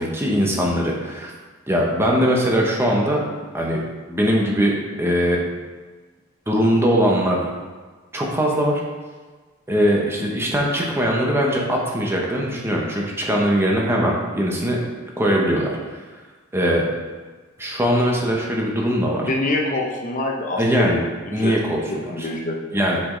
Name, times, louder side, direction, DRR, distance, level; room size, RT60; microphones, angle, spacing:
voice 1, 0.0-1.3 1.7-3.2 3.5-3.8 4.1-5.4 6.5-7.4 8.1-8.8 9.7-14.8 15.2-16.0 16.5-16.9 17.6-19.3 20.6-21.0 21.3-22.3 22.7-23.0, equal, 10° right, -2 dB, 1.0 m, -21 dB
voice 2, 19.3-21.5 22.1-22.6, left 2 dB, 40° left, 0 dB, 0.7 m, -25 dB
7.0 x 5.1 x 3.9 m, 1.4 s
head